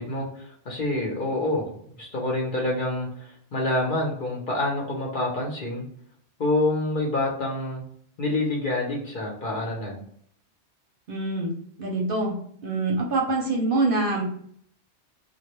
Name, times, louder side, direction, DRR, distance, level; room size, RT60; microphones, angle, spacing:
voice 1, 0.0-1.7 2.0-5.9 6.4-7.8 8.2-10.0, left 2 dB, 50° left, -1 dB, 0.8 m, -27 dB
voice 2, 11.1-11.5 11.8-12.3 12.6-14.2, right 2 dB, 55° right, -1 dB, 0.8 m, -25 dB
2.2 x 2.1 x 2.9 m, 0.63 s
omnidirectional pair, 1.2 m